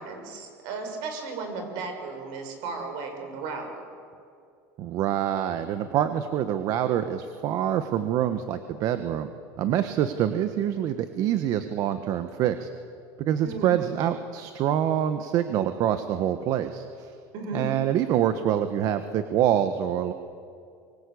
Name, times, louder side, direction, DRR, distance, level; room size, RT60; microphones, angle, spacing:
voice 1, 0.0-3.8 13.4-13.9 17.3-17.7, right 3 dB, 65° right, 5 dB, 6.7 m, -35 dB
voice 2, 4.8-9.3 9.6-12.7 13.2-17.1 17.5-20.1, right 10 dB, 50° right, 10 dB, 1.3 m, -26 dB
25.0 x 24.0 x 8.5 m, 2.4 s
cardioid pair, 150°, 8 cm